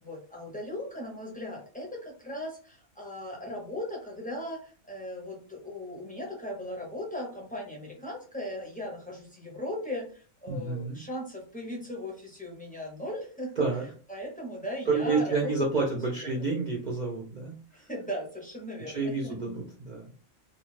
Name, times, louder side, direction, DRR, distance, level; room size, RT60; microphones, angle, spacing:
voice 1, 0.0-13.5 14.1-15.5 15.8-15.9 16.3-16.4 17.7-19.4, left 1 dB, 10° left, -2 dB, 0.5 m, -38 dB
voice 2, 10.5-11.0 13.6-13.9 14.9-17.5 18.9-20.2, right 4 dB, 55° right, -1 dB, 0.4 m, -29 dB
2.4 x 2.3 x 3.1 m, 0.40 s
omnidirectional pair, 1.4 m